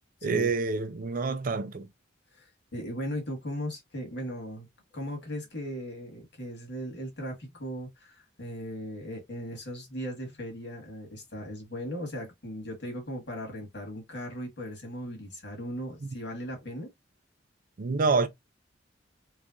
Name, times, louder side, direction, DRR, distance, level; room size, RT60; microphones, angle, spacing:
voice 1, 0.2-1.9 16.0-16.1 17.8-18.3, right 4 dB, 50° right, 0.5 m, -27 dB
voice 2, 2.7-4.7 4.9-16.9, equal, 65° left, 1.8 m, -37 dB
3.4 x 3.2 x 2.5 m
head